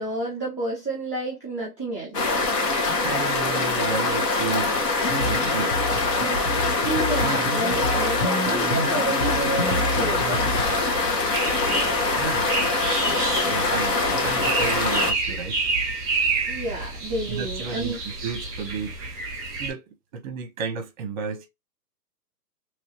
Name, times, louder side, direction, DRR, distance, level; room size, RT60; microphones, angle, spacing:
voice 1, 0.0-2.3 6.8-10.7 16.5-18.0, right 2 dB, 20° left, 0.4 m, -30 dB
sound 1, 2.1-15.1, left 3 dB, 70° left, 1.5 m, -24 dB
voice 2, 3.0-4.8 5.2-5.7 12.1-12.6 13.3-15.6 17.3-19.0 19.6-19.8 20.1-21.5, right 5 dB, 30° right, 0.7 m, -33 dB
sound 2, 5.1-10.8, equal, 35° left, 0.8 m, -29 dB
sound 3, 9.3-19.7, right 3 dB, 10° right, 1.2 m, -29 dB
3.1 x 2.7 x 2.9 m
hypercardioid pair, 155°, 50 cm